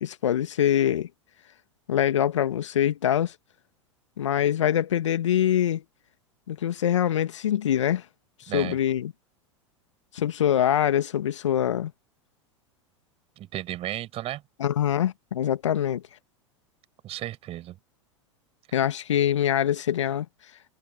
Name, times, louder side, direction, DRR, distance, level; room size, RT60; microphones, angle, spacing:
voice 1, 0.0-1.1 1.9-3.3 4.2-5.8 6.5-8.0 8.5-9.1 10.1-11.9 14.6-16.0 18.7-20.3, left 10 dB, 75° left, 1.8 m, -24 dB
voice 2, 8.5-8.8 13.4-14.4 17.0-17.8, right 14 dB, 40° right, 6.4 m, -34 dB
figure-of-eight pair, 90°, 16 cm